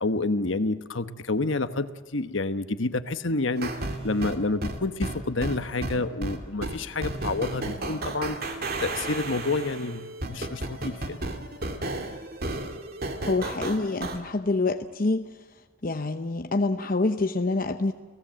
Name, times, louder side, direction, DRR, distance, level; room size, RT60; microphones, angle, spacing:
voice 1, 0.0-3.7 4.0-11.2, left 2 dB, 65° left, 10 dB, 1.2 m, -29 dB
sound 1, 3.6-14.2, right 2 dB, 50° right, 2.5 m, -33 dB
voice 2, 13.3-15.3 15.8-17.9, left 3 dB, 45° left, 7 dB, 0.8 m, -26 dB
30.0 x 17.5 x 7.7 m, 1.4 s
head